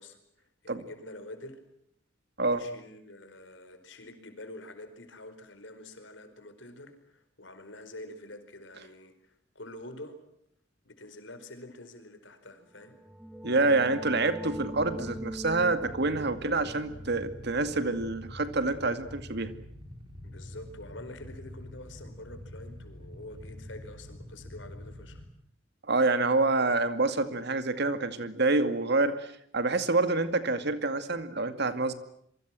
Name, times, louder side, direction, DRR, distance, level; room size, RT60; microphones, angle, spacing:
voice 1, 0.0-1.6 2.5-10.2 10.8-13.0 16.4-16.8 20.2-25.2, left 1 dB, 70° left, 8 dB, 4.9 m, -47 dB
sound 1, 12.7-18.3, right 1 dB, 5° right, 1.4 m, -43 dB
voice 2, 13.4-19.5 25.9-31.9, right 3 dB, 60° right, 10 dB, 2.3 m, -27 dB
Motorcycle / Idling, 14.5-25.2, left 1 dB, 25° right, 5.3 m, -46 dB
27.0 x 24.0 x 7.7 m, 0.71 s
head